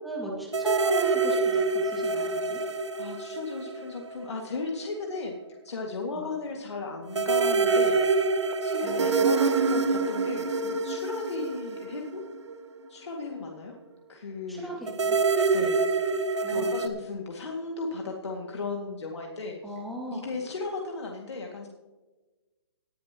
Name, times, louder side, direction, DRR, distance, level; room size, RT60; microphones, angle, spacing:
voice 1, 0.0-2.6 8.8-9.1 14.5-15.2 16.4-16.7 19.6-20.2, right 1 dB, ahead, -5 dB, 2.3 m, -37 dB
sound 1, 0.5-4.3 4.5-4.6 7.1-12.5 14.9-16.9, right 4 dB, 85° right, 1.2 m, -26 dB
voice 2, 2.5-5.4 5.6-8.3 8.6-12.2 12.9-13.8 14.1-14.8 15.5-15.8 16.5-19.8 20.1-21.7, left 3 dB, 75° left, 0 dB, 2.1 m, -35 dB
19.5 x 10.5 x 3.0 m, 1.2 s
hypercardioid pair, 155°, 14 cm